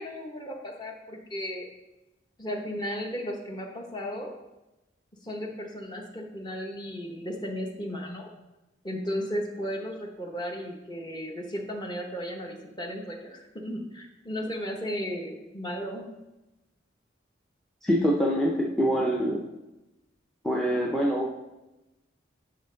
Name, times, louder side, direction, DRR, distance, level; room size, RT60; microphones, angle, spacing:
voice 1, 0.0-1.6 2.4-4.3 5.2-8.3 8.8-16.1, equal, 20° left, 1 dB, 1.0 m, -35 dB
voice 2, 17.8-19.4 20.4-21.3, equal, ahead, -2 dB, 0.6 m, -25 dB
8.8 x 5.6 x 3.8 m, 0.99 s
head